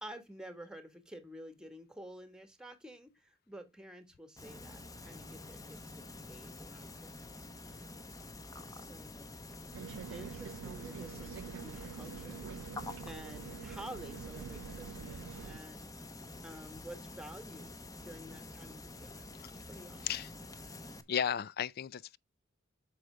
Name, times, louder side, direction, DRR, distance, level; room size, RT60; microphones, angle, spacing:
voice 1, 0.0-5.8 6.1-8.0 8.7-9.3 10.1-12.6 13.1-15.9 16.4-19.3 19.7-20.1, equal, 5° right, 1.4 m, -50 dB
sound 1, 4.4-21.0, left 2 dB, 20° left, 0.8 m, -48 dB
sound 2, 9.7-15.6, right 6 dB, 85° right, 0.4 m, -46 dB
voice 2, 21.1-22.2, left 8 dB, 55° left, 0.4 m, -34 dB
7.9 x 6.5 x 3.3 m
head